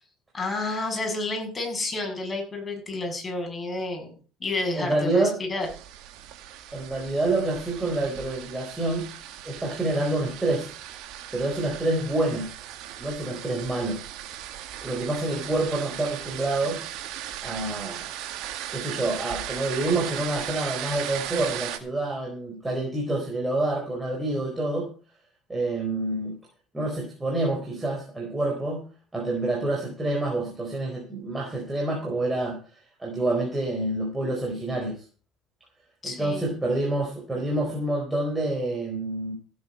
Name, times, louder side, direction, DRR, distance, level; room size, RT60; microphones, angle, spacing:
voice 1, 0.3-4.1 4.4-5.7 36.0-36.6, left 2 dB, 20° left, 1 dB, 7.0 m, -30 dB
voice 2, 4.7-5.4 6.7-9.0 9.4-10.7 11.3-12.5 13.0-14.0 14.8-16.8 17.4-18.2 18.7-24.9 25.5-26.3 26.7-28.8 29.1-32.6 33.0-35.0 36.0-39.3, right 2 dB, 15° right, -1 dB, 4.1 m, -27 dB
sound 1, 5.6-21.8, right 11 dB, 70° right, 2.0 m, -37 dB
15.5 x 8.5 x 5.4 m, 0.38 s
supercardioid pair, 105°, 0 cm